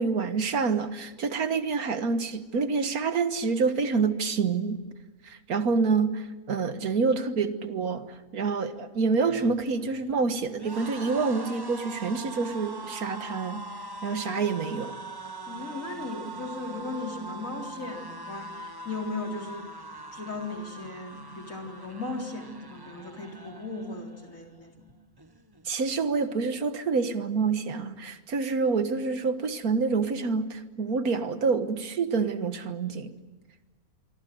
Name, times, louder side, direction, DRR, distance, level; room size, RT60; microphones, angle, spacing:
voice 1, 0.0-4.8 5.2-13.7 14.0-14.9 25.7-33.2, right 4 dB, 90° right, 1.9 m, -27 dB
sound 1, 9.1-24.3 24.7-24.9 25.2-26.0, right 2 dB, 20° right, 1.0 m, -42 dB
voice 2, 15.5-19.7 20.1-24.9, left 3 dB, 65° left, 4.3 m, -37 dB
26.5 x 24.5 x 7.8 m
omnidirectional pair, 1.5 m